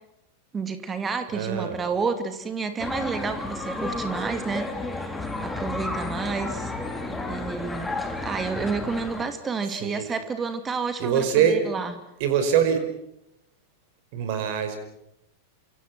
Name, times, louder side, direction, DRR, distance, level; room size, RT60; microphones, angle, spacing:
voice 1, 0.5-6.7 7.3-7.9 8.2-11.2 11.5-11.9, right 5 dB, 20° right, 8 dB, 2.6 m, -30 dB
voice 2, 1.3-1.9 9.7-10.0 11.0-11.6 12.2-12.8 14.1-14.8, right 8 dB, 45° right, 8 dB, 5.2 m, -23 dB
sound 1, 2.8-9.2, left 2 dB, 10° left, 4.2 m, -32 dB
29.0 x 26.5 x 6.1 m, 0.80 s
figure-of-eight pair, 90°, 0 cm